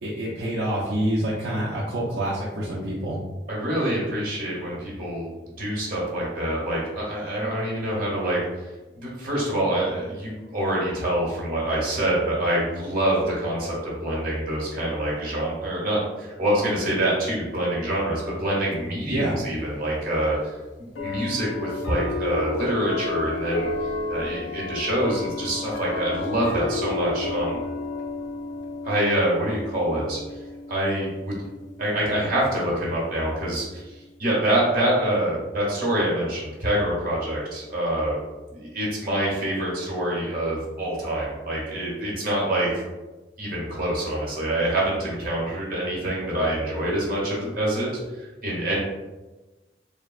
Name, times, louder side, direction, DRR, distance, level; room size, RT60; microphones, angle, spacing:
voice 1, 0.0-3.2 19.1-19.4, right 1 dB, 75° right, -7 dB, 0.5 m, -27 dB
voice 2, 3.5-5.3 5.6-8.7 8.9-20.4 21.0-23.7 24.1-27.6 28.8-30.4 30.7-31.3 31.8-38.2 38.5-42.9 43.4-47.9 48.1-48.8, right 1 dB, 55° right, -5 dB, 1.1 m, -26 dB
sound 1, 18.7-18.8 19.9-20.0 20.9-34.2, left 3 dB, 85° left, 0.4 m, -33 dB
3.4 x 2.1 x 2.3 m, 1.2 s
head